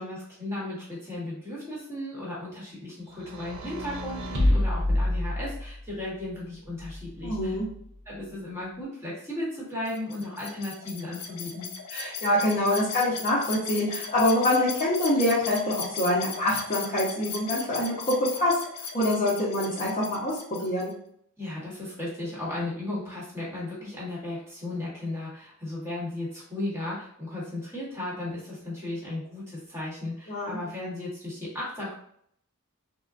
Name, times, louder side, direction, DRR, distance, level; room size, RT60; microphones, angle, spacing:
voice 1, 0.0-7.6 8.1-11.7 21.4-31.9, left 2 dB, 10° right, -7 dB, 1.1 m, -35 dB
sound 1, 3.2-5.9 6.8-7.7, left 1 dB, 60° right, 0.6 m, -28 dB
voice 2, 7.2-7.7 11.9-18.5 18.9-20.9 30.3-30.6, left 1 dB, 35° left, -7 dB, 0.7 m, -25 dB
sound 2, 9.8-20.9, left 6 dB, 85° left, 0.5 m, -37 dB
3.6 x 2.1 x 2.4 m, 0.67 s
head